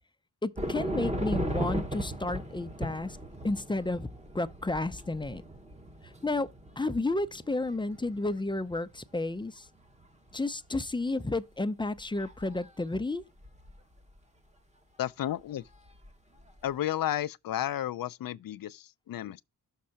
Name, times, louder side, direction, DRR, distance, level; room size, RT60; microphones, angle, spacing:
voice 1, 0.4-3.2 3.4-4.1 4.3-5.4 6.2-6.5 6.8-9.7 10.3-13.2, left 2 dB, 15° left, 0.5 m, -31 dB
sound 1, 0.6-9.2 9.7-10.3 10.8-10.9 12.0-12.6 13.4-13.8 15.9-16.1 16.4-16.6, equal, 20° right, 1.1 m, -37 dB
voice 2, 15.0-15.7 16.6-19.4, left 12 dB, 65° left, 0.5 m, -32 dB
6.5 x 3.7 x 5.6 m
cardioid pair, 85°, 37 cm